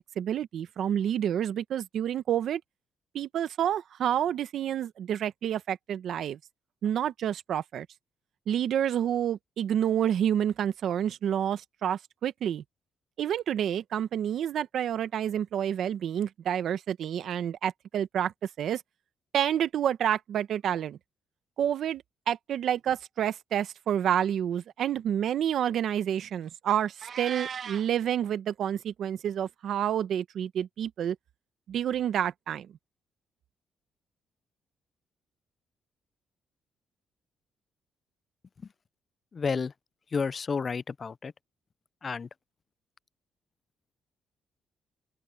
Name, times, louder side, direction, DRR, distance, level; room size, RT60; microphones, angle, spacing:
voice 1, 0.0-2.6 3.1-6.4 6.8-7.9 8.5-12.6 13.2-18.3 18.6-18.8 19.3-21.0 21.6-31.1 31.7-32.7, right 9 dB, 70° right, 1.0 m, -29 dB
Meow, 27.0-27.9, right 7 dB, 50° right, 1.3 m, -37 dB
voice 2, 39.4-39.7 40.1-41.3 42.0-42.3, left 5 dB, 40° left, 0.3 m, -30 dB
open air
cardioid pair, 90°, 0 cm